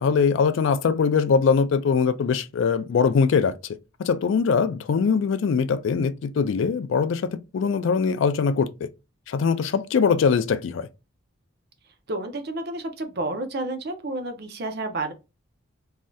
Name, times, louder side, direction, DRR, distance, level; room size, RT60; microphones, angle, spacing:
voice 1, 0.0-3.5 4.0-8.9 9.3-10.9, left 5 dB, 60° left, 0.3 m, -22 dB
voice 2, 12.1-15.1, right 2 dB, 50° right, 0.6 m, -30 dB
3.2 x 2.6 x 2.3 m
head